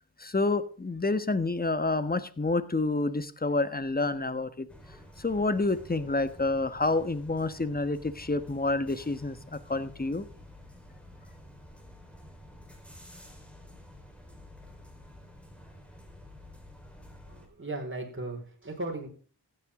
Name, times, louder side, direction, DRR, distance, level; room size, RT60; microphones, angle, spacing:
voice 1, 0.2-4.7 5.2-10.2, left 2 dB, 25° left, 13 dB, 1.4 m, -28 dB
sound 1, 4.7-17.5, left 1 dB, 5° left, 4.3 m, -50 dB
voice 2, 17.3-19.1, right 2 dB, 30° right, 0 dB, 5.0 m, -37 dB
15.0 x 9.4 x 3.8 m, 0.39 s
cardioid pair, 50°, 40 cm